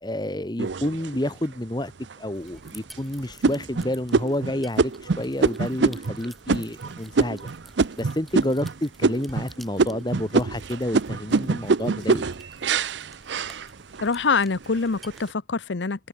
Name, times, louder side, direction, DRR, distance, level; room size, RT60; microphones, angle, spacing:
voice 1, 0.0-1.9 2.2-7.5 8.0-12.2, left 1 dB, 25° left, 1.3 m, -29 dB
sound 1, 0.6-1.4 2.0-2.1 2.6-3.0 3.4-8.7 9.0-9.5 9.8-14.1 14.6-15.1, right 4 dB, 75° right, 0.6 m, -25 dB
sound 2, 2.3-15.3, equal, ahead, 5.7 m, -51 dB
voice 2, 14.0-16.1, left 4 dB, 80° left, 0.8 m, -25 dB
head